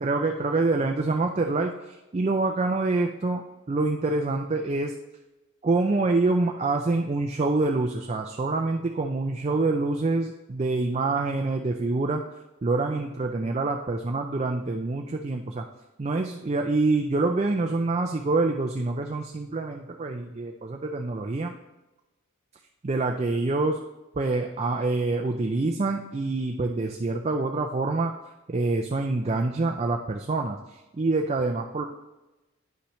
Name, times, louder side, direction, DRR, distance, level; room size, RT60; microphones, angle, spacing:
voice 1, 0.0-3.4 3.7-4.9 5.6-12.2 12.6-15.7 16.0-21.5 22.8-23.8 24.2-28.1 28.5-31.9, right 3 dB, 30° right, 3 dB, 0.4 m, -26 dB
9.9 x 5.8 x 3.1 m, 1.1 s
head